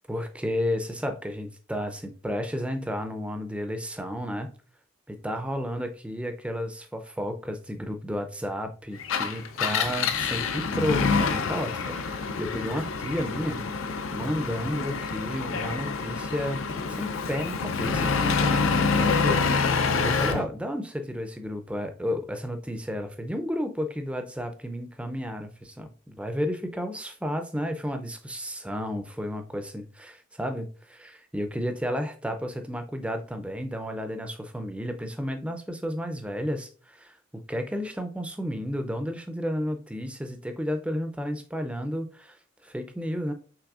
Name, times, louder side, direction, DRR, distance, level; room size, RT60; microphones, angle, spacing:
voice 1, 0.1-4.5 5.1-13.6 14.1-37.1 37.5-42.4 42.6-43.3, equal, 5° right, 0.4 m, -32 dB
Engine, 9.0-20.5, left 5 dB, 70° left, 0.5 m, -27 dB
5.9 x 3.4 x 2.4 m
head